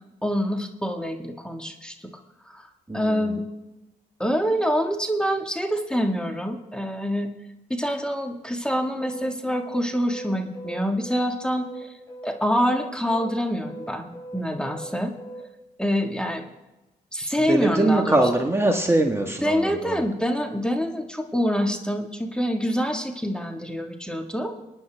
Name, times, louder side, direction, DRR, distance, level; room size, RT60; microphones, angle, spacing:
voice 1, 0.2-1.9 2.5-2.7 2.9-3.4 4.2-7.3 7.7-11.9 12.2-15.1 15.8-16.5 17.1-18.2 19.4-24.5, equal, 5° left, 4 dB, 1.7 m, -26 dB
voice 2, 2.9-3.4 17.5-20.0, right 2 dB, 15° right, 3 dB, 1.4 m, -22 dB
sound 1, 9.0-12.3 12.6-15.4, right 1 dB, 20° left, 5.5 m, -39 dB
23.0 x 9.6 x 3.4 m, 1.0 s
supercardioid pair, 65°, 18 cm